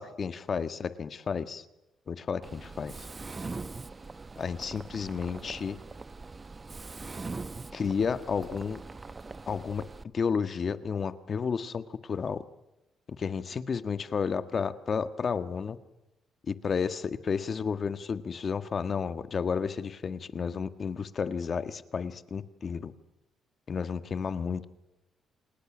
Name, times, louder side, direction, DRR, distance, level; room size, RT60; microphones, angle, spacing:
voice 1, 0.0-1.6 2.1-3.1 4.4-5.8 7.7-8.8 9.5-9.8 10.1-12.4 13.2-15.8 16.5-22.9 23.7-24.6, left 6 dB, 45° left, 11 dB, 1.6 m, -32 dB
Mechanisms, 2.4-10.0, right 3 dB, 25° right, 0.9 m, -42 dB
28.5 x 20.0 x 6.3 m, 0.94 s
cardioid pair, 90°, 0 cm